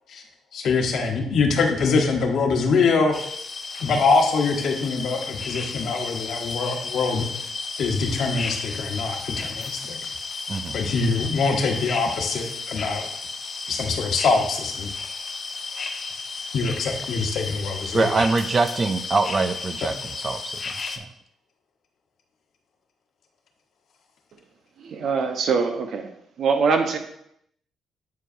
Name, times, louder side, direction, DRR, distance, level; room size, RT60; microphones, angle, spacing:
voice 1, 0.5-3.2 3.8-7.5 7.8-10.0 10.7-13.1 13.7-14.9 16.5-18.2, left 4 dB, 65° left, 2 dB, 1.1 m, -24 dB
sound 1, 3.1-21.0, left 4 dB, 45° left, 0.6 m, -33 dB
voice 2, 17.9-21.1, right 3 dB, 35° right, 10 dB, 0.4 m, -24 dB
voice 3, 24.8-26.1 26.4-27.0, right 5 dB, 65° right, 5 dB, 0.9 m, -23 dB
8.1 x 4.5 x 2.6 m, 0.74 s
cardioid pair, 90°, 0 cm